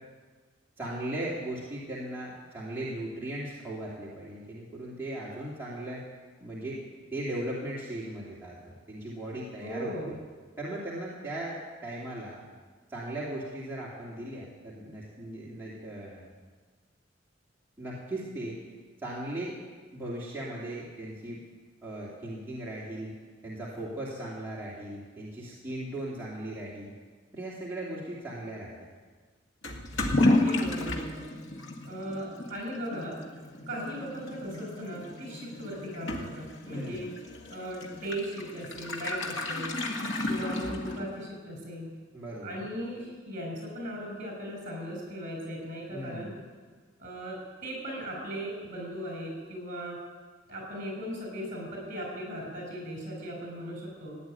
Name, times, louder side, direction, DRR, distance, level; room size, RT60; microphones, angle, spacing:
voice 1, 0.8-6.0 6.4-6.8 7.1-10.1 10.6-12.4 12.9-16.3 17.8-18.6 19.0-19.6 19.9-21.4 21.8-23.1 23.4-26.9 27.3-28.7 36.7-37.1 42.1-42.6 45.9-46.4, right 1 dB, 10° right, -7 dB, 2.7 m, -38 dB
voice 2, 9.6-10.1 30.2-31.3 31.8-33.2 33.7-37.1 37.5-39.8 40.2-41.9 42.4-46.3 47.0-50.0 50.5-54.2, equal, 45° right, 1 dB, 6.3 m, -38 dB
Toilet flush / Liquid, 29.6-41.3, left 2 dB, 75° left, 1.9 m, -32 dB
16.0 x 9.8 x 9.2 m, 1.5 s
head